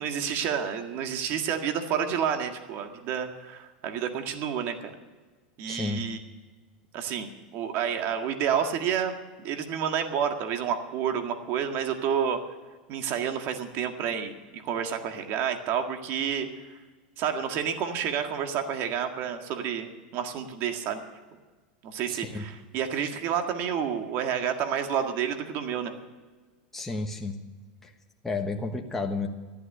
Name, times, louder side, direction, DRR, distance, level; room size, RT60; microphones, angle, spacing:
voice 1, 0.0-4.9 5.6-6.2 6.9-9.2 9.4-12.4 12.9-16.5 17.2-21.0 21.8-25.9, right 8 dB, 45° right, 6 dB, 1.8 m, -29 dB
voice 2, 5.7-6.0 22.1-22.5 26.7-27.4 27.8-27.9 28.2-29.3, left 3 dB, 5° left, 1 dB, 1.3 m, -31 dB
14.0 x 12.0 x 6.7 m, 1.3 s
supercardioid pair, 130°, 5 cm